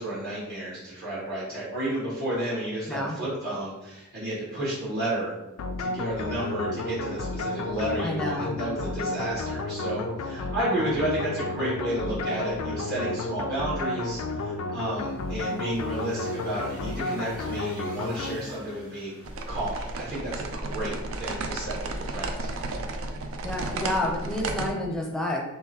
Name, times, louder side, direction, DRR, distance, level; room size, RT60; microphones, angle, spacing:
voice 1, 0.0-5.3 5.8-19.1 19.5-22.5, right 1 dB, 50° right, -8 dB, 1.3 m, -32 dB
sound 1, 5.6-18.9, left 2 dB, 90° left, 0.4 m, -32 dB
voice 2, 8.0-8.5 23.4-25.4, left 1 dB, 5° left, -1 dB, 0.6 m, -29 dB
sound 2, 14.9-20.4, right 1 dB, 85° right, 1.0 m, -49 dB
sound 3, 19.2-24.7, right 2 dB, 70° right, 0.4 m, -33 dB
3.8 x 3.0 x 2.8 m, 0.95 s
head